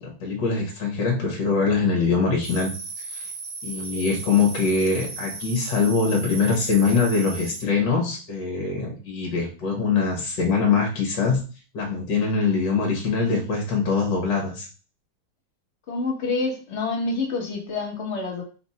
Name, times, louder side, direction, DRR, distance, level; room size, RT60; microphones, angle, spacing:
voice 1, 0.0-2.7 3.0-3.3 3.6-11.4 11.7-14.7, left 4 dB, 65° left, 1 dB, 1.6 m, -23 dB
sound 1, 2.4-7.6, right 3 dB, 65° right, 1.6 m, -36 dB
voice 2, 15.9-18.4, left 3 dB, 40° left, 0 dB, 1.3 m, -27 dB
4.0 x 2.5 x 4.1 m, 0.36 s
omnidirectional pair, 2.2 m